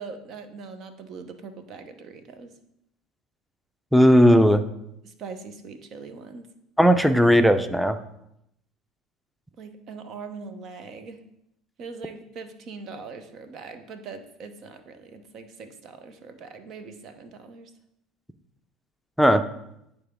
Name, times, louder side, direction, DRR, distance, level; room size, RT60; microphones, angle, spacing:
voice 1, 0.0-2.5 5.0-6.5 9.6-11.2 11.8-17.7, right 4 dB, 50° right, 9 dB, 0.9 m, -41 dB
voice 2, 3.9-4.6 6.8-8.0 19.2-19.4, equal, ahead, 8 dB, 0.6 m, -16 dB
9.5 x 4.3 x 3.7 m, 0.79 s
hypercardioid pair, 70°, 0 cm